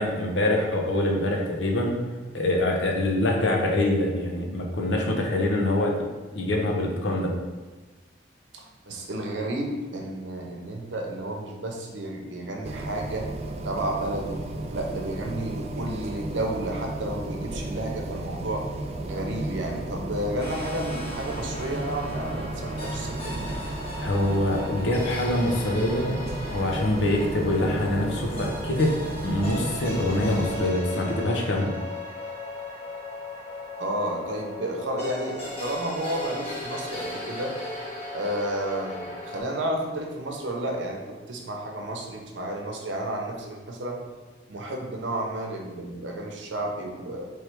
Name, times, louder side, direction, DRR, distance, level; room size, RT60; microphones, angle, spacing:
voice 1, 0.0-2.0 2.3-5.9 6.3-7.3 24.0-26.1 26.5-28.9 29.2-31.7, left 1 dB, 80° left, 0 dB, 0.8 m, -24 dB
voice 2, 8.5-13.3 13.6-14.4 14.7-18.6 19.0-23.5 33.8-37.5 38.1-44.0 44.5-47.3, right 1 dB, 80° right, 1 dB, 0.8 m, -31 dB
sound 1, 12.6-30.7, right 1 dB, 35° right, 0.3 m, -34 dB
sound 2, 20.4-39.4, left 2 dB, 30° left, 1.1 m, -37 dB
3.3 x 3.3 x 4.6 m, 1.3 s
head